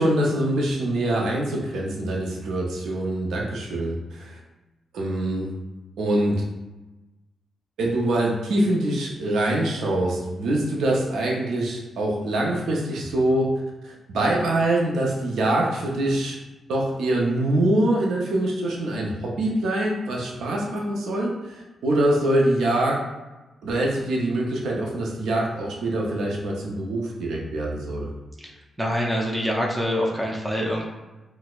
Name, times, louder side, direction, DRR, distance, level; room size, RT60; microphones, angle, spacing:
voice 1, 0.0-4.4 4.9-5.5 6.0-6.4 7.8-13.5 13.8-16.4 16.7-23.0 23.6-28.1, right 1 dB, 85° right, -2 dB, 0.5 m, -24 dB
voice 2, 28.8-30.9, equal, 10° right, -2 dB, 0.5 m, -25 dB
4.1 x 2.0 x 2.3 m, 1.1 s
cardioid pair, 75°, 0 cm